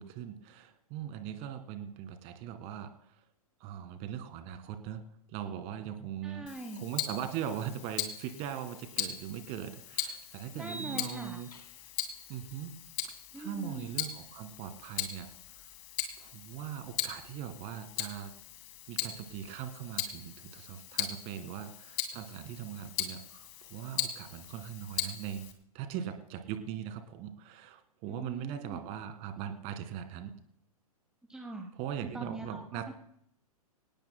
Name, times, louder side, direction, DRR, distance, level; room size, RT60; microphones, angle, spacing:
voice 1, 0.0-3.1 3.6-5.0 5.3-6.5 6.8-11.5 12.3-12.8 13.0-15.3 16.2-18.3 18.9-25.5 25.7-30.3 31.7-32.9, right 9 dB, 30° right, 9 dB, 1.9 m, -40 dB
voice 2, 6.2-6.8 10.5-11.4 13.3-14.0 28.1-28.8 31.3-31.7 32.0-32.9, right 1 dB, 5° right, 4 dB, 1.0 m, -43 dB
Tick-tock, 6.5-25.5, left 11 dB, 40° left, 2.3 m, -39 dB
sound 1, 8.9-9.0 10.6-12.0, right 3 dB, 75° left, 2.5 m, -47 dB
25.0 x 18.0 x 2.2 m, 0.69 s
figure-of-eight pair, 110°, 20 cm